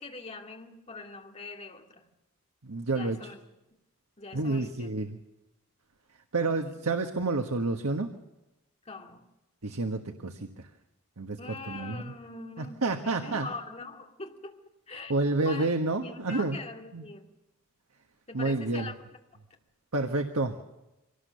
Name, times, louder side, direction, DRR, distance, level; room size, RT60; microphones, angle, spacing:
voice 1, 0.0-2.0 2.9-3.4 4.2-4.9 6.4-6.7 8.9-9.3 11.4-14.6 14.9-15.1 15.4-15.7 16.0-17.3 18.3-18.9, left 3 dB, 30° left, 2 dB, 2.2 m, -43 dB
voice 2, 2.6-3.3 4.3-5.2 6.3-8.1 9.6-10.7 11.2-11.4 11.7-12.1 12.6-13.5 15.1-16.6 16.9-17.1 18.3-18.9 19.9-20.5, right 3 dB, 80° right, 5 dB, 1.4 m, -29 dB
25.0 x 18.0 x 6.9 m, 0.97 s
head